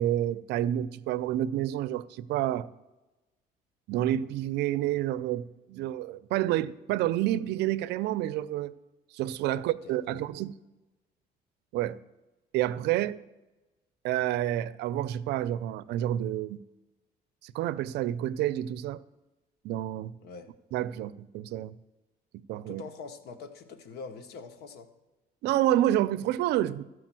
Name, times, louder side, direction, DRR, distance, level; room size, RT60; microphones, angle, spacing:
voice 1, 0.0-2.7 3.9-8.7 9.1-10.5 11.7-12.0 12.5-13.2 14.0-16.6 17.4-19.0 19.6-20.1 20.7-21.8 22.5-22.8 25.4-26.8, right 13 dB, 80° right, 0.5 m, -29 dB
voice 2, 9.8-10.2 20.2-20.5 22.7-24.9, left 4 dB, 70° left, 1.2 m, -44 dB
13.5 x 4.9 x 7.5 m
cardioid pair, 110°, 17 cm